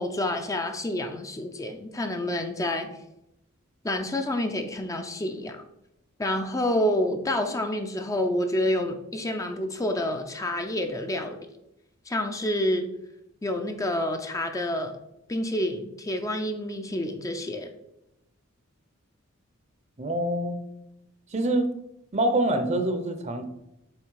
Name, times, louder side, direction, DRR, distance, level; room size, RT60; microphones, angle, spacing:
voice 1, 0.0-2.9 3.8-5.6 6.2-11.5 12.1-12.9 13.4-15.0 15.3-17.7, left 1 dB, 15° left, 5 dB, 0.5 m, -28 dB
voice 2, 20.0-20.6 21.3-21.7 22.1-23.4, right 1 dB, 35° right, 8 dB, 0.7 m, -25 dB
7.4 x 3.3 x 4.7 m, 0.84 s
head